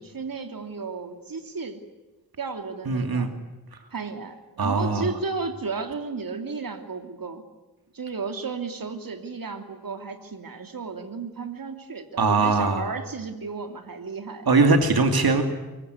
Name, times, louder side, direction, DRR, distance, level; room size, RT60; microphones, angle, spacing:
voice 1, 0.0-1.8 2.4-3.3 3.9-7.4 7.9-14.5, right 4 dB, 70° right, 6 dB, 3.0 m, -33 dB
voice 2, 2.9-3.3 4.6-5.1 12.2-12.8 14.5-15.4, right 3 dB, 90° right, 6 dB, 2.7 m, -21 dB
25.5 x 23.0 x 9.6 m, 1.1 s
wide cardioid pair, 75°, 36 cm